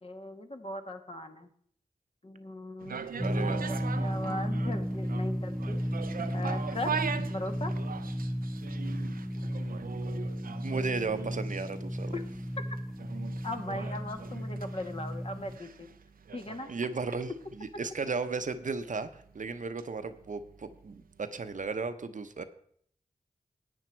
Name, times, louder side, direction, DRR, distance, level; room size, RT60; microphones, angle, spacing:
voice 1, 0.0-1.5 2.2-5.8 6.3-6.9 7.3-7.7 12.1-12.2 13.4-15.9 16.3-16.7, left 1 dB, 45° left, 5 dB, 1.6 m, -39 dB
sound 1, 2.8-20.9 21.3-21.4, right 6 dB, 90° right, 0.6 m, -41 dB
sound 2, 3.2-15.6, equal, ahead, 0.4 m, -34 dB
voice 2, 3.2-3.7 10.6-12.2 16.7-17.3 17.6-19.1 19.3-22.4, right 4 dB, 65° right, 9 dB, 0.9 m, -35 dB
11.5 x 8.9 x 4.5 m, 0.63 s
cardioid pair, 40°, 14 cm